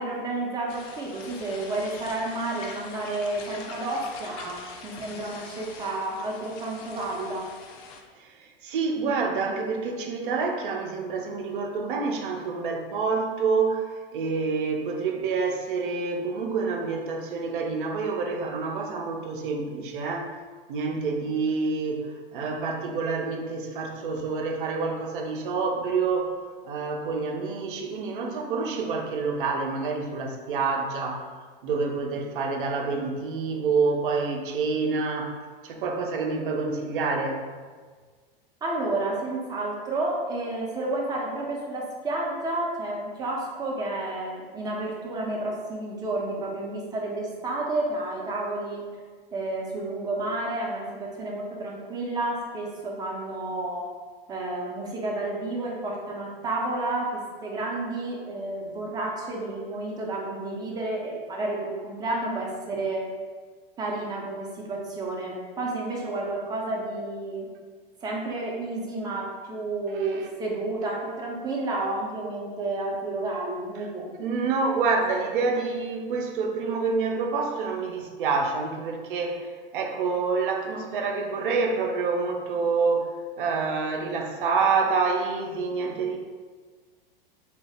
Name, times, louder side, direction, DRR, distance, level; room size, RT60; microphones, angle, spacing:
voice 1, 0.0-7.5 38.6-48.8 49.3-53.8 54.3-57.1 57.4-63.0 63.8-67.5 68.0-74.1, right 2 dB, 15° right, -2 dB, 0.5 m, -31 dB
sound 1, 0.7-8.0, left 4 dB, 40° left, 0.4 m, -44 dB
voice 2, 8.2-20.3 20.7-26.3 26.6-31.3 31.6-35.4 35.6-37.4 69.9-70.3 73.8-73.9 74.2-86.2, right 4 dB, 60° right, 3 dB, 0.5 m, -27 dB
2.7 x 2.0 x 3.3 m, 1.5 s
figure-of-eight pair, 100°, 29 cm